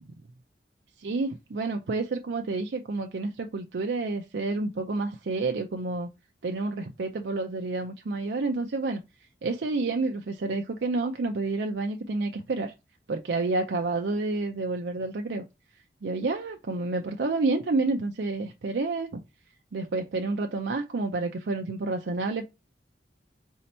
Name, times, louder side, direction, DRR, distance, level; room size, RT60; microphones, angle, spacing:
voice 1, 1.0-6.1 6.4-9.0 9.4-12.7 13.1-15.4 16.0-19.2 19.7-22.4, right 3 dB, 75° right, 0.5 m, -29 dB
4.3 x 2.7 x 4.1 m
head